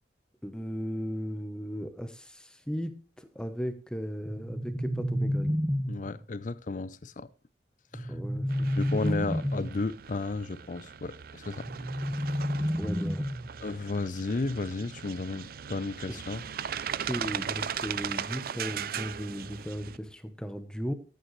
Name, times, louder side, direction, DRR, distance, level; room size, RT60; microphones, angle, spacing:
voice 1, 0.4-5.6 8.1-8.7 8.9-9.1 12.8-13.2 16.1-16.2 17.0-20.9, equal, 5° left, 0.9 m, -36 dB
sound 1, 4.2-6.2 7.9-9.8 11.6-13.6, equal, 10° right, 1.2 m, -30 dB
voice 2, 5.9-7.3 7.9-8.1 8.8-11.7 12.2-12.3 13.6-16.4, left 3 dB, 45° left, 0.5 m, -33 dB
sound 2, 8.5-20.0, right 8 dB, 55° right, 0.5 m, -38 dB
13.5 x 9.2 x 3.2 m
head